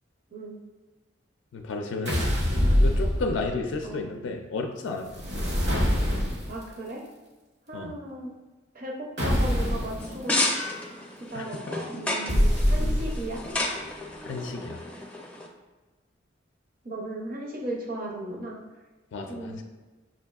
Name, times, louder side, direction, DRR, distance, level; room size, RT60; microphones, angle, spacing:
voice 1, 1.5-2.4 2.8-5.3 7.7-7.9 11.3-11.5 12.8-13.1 14.2-14.8 19.1-19.6, left 3 dB, 75° left, 3 dB, 0.4 m, -32 dB
sound 1, 2.0-3.7 5.1-6.6 9.2-10.0 12.3-13.4, equal, 65° right, 0.9 m, -24 dB
voice 2, 3.8-4.4 6.5-7.0 7.7-8.3 8.7-10.4 11.3-13.4 16.8-18.6 19.3-19.6, right 1 dB, 50° right, -1 dB, 0.6 m, -36 dB
sound 2, 10.0-15.5, left 1 dB, 10° left, 0.4 m, -32 dB
6.0 x 2.6 x 2.3 m, 1.2 s
head